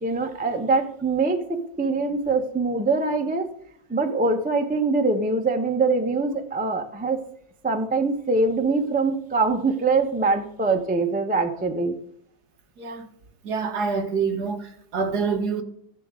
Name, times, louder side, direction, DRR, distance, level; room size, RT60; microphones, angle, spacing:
voice 1, 0.0-3.5 3.9-7.2 7.6-12.0, right 3 dB, 5° right, 0.6 m, -23 dB
voice 2, 13.4-15.6, right 5 dB, 60° right, 1.7 m, -26 dB
13.5 x 10.5 x 3.8 m
omnidirectional pair, 2.0 m